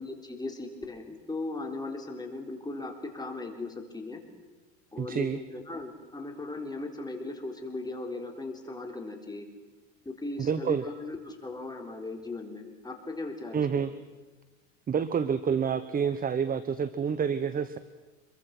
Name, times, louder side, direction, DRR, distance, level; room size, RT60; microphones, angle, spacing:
voice 1, 0.0-4.2 4.9-9.5 10.1-13.9, left 2 dB, 10° left, 2 dB, 4.0 m, -38 dB
voice 2, 5.0-5.4 10.4-10.8 13.5-13.9 14.9-17.8, right 7 dB, 25° right, 13 dB, 1.0 m, -28 dB
26.5 x 23.0 x 6.1 m, 1.2 s
supercardioid pair, 110°, 38 cm